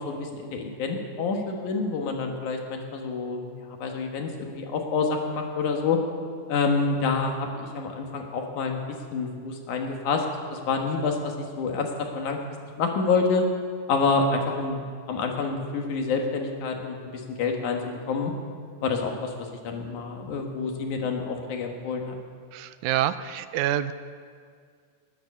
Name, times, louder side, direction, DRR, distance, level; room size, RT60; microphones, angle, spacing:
voice 1, 0.0-6.0 6.5-8.8 9.1-10.2 10.5-12.4 12.8-13.4 13.9-14.8 15.1-17.0 17.4-18.3 18.8-19.3 19.6-22.2, left 4 dB, 85° left, 2 dB, 3.0 m, -27 dB
voice 2, 22.5-23.9, right 12 dB, 85° right, 13 dB, 2.0 m, -27 dB
20.0 x 9.2 x 6.7 m, 2.1 s
omnidirectional pair, 3.4 m